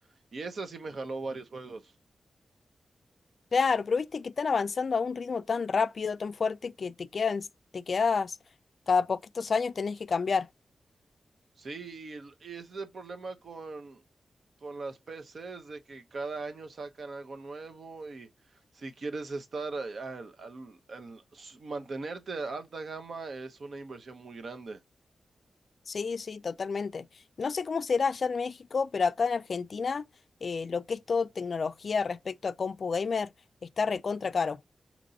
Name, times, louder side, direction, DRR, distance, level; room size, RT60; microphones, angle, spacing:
voice 1, 0.3-1.9 11.6-14.0 14.6-18.3 18.7-24.8, right 3 dB, 60° right, 0.7 m, -39 dB
voice 2, 3.5-7.5 7.7-8.4 8.9-10.5 25.9-27.1 27.4-30.0 30.4-33.3 33.8-34.6, left 5 dB, 55° left, 0.3 m, -29 dB
5.1 x 3.0 x 2.7 m
wide cardioid pair, 110°, 0 cm